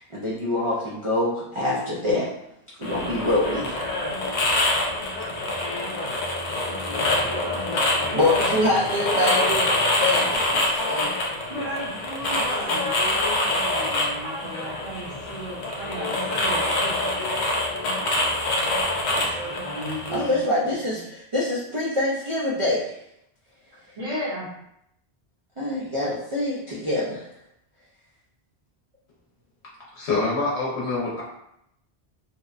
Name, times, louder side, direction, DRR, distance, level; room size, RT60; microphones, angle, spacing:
voice 1, 0.0-2.3 2.8-3.9 7.7-11.2 12.3-12.5 19.1-19.6 20.1-23.0 25.6-27.3, left 1 dB, 60° right, -6 dB, 0.3 m, -26 dB
sound 1, 2.8-20.3, left 2 dB, 55° left, 0.6 m, -25 dB
voice 2, 11.5-17.2 19.6-20.4 23.9-24.5, equal, 40° right, -10 dB, 0.7 m, -35 dB
voice 3, 29.9-31.2, left 3 dB, 80° left, -6 dB, 0.9 m, -25 dB
2.8 x 2.0 x 2.3 m, 0.78 s
omnidirectional pair, 1.1 m